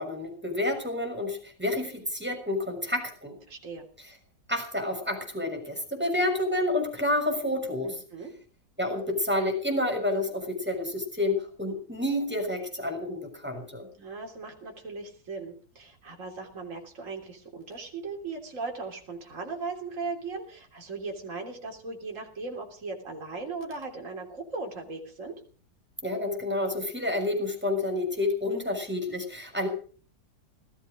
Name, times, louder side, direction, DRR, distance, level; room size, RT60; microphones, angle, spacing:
voice 1, 0.0-3.3 4.5-7.9 8.8-13.9 26.0-29.7, left 1 dB, 5° right, 3 dB, 6.2 m, -29 dB
voice 2, 3.5-3.8 7.8-8.3 14.0-25.4, right 3 dB, 45° right, 1 dB, 3.6 m, -38 dB
19.0 x 15.0 x 5.1 m, 0.42 s
omnidirectional pair, 1.9 m